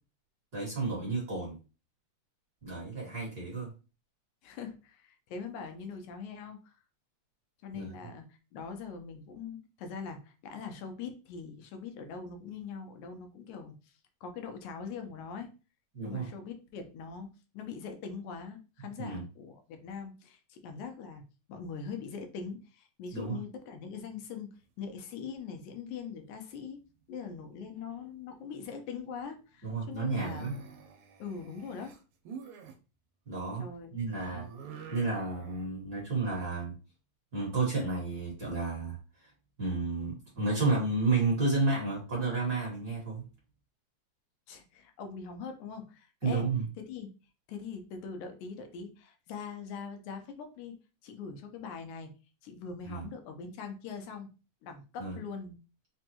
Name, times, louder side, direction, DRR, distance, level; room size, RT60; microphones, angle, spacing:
voice 1, 0.5-1.6 2.6-3.7 7.7-7.9 15.9-16.3 19.0-19.2 23.1-23.4 29.6-30.6 33.3-33.7 33.9-34.4 34.9-36.7 37.3-39.3 39.6-43.2 46.2-46.7 52.8-53.1 55.0-55.2, right 3 dB, 45° right, -4 dB, 1.5 m, -31 dB
voice 2, 4.4-6.7 7.6-8.2 8.5-13.7 14.2-15.5 16.0-21.2 21.5-26.8 27.1-30.6 31.2-32.0 33.6-34.3 44.5-46.5 46.9-47.1 47.5-52.1 52.4-54.3 54.6-55.6, left 5 dB, 85° left, 5 dB, 2.1 m, -42 dB
sound 1, 26.3-27.0 27.3-27.8 30.0-32.7 34.3-35.7, right 7 dB, 85° right, 2.1 m, -47 dB
5.0 x 2.3 x 2.9 m, 0.32 s
omnidirectional pair, 3.3 m